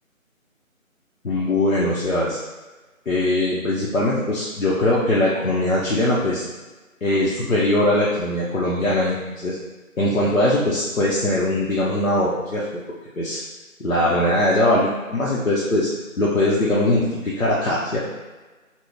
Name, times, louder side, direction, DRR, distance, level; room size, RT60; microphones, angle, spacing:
voice 1, 1.2-2.4 3.1-6.4 7.0-9.6 10.0-12.6 13.2-13.4 13.8-15.9 16.2-18.1, left 1 dB, 70° left, -7 dB, 0.9 m, -21 dB
4.3 x 2.2 x 3.3 m, 1.2 s
figure-of-eight pair, 165°, 42 cm